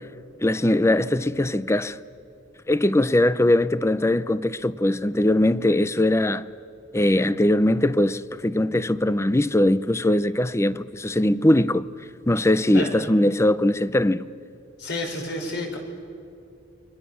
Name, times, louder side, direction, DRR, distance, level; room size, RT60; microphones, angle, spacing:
voice 1, 0.4-2.0 2.7-6.5 6.9-11.9 12.3-14.3, left 1 dB, 15° left, 0.6 m, -21 dB
voice 2, 14.8-15.8, left 1 dB, 65° left, 5.2 m, -29 dB
29.5 x 24.5 x 7.1 m
head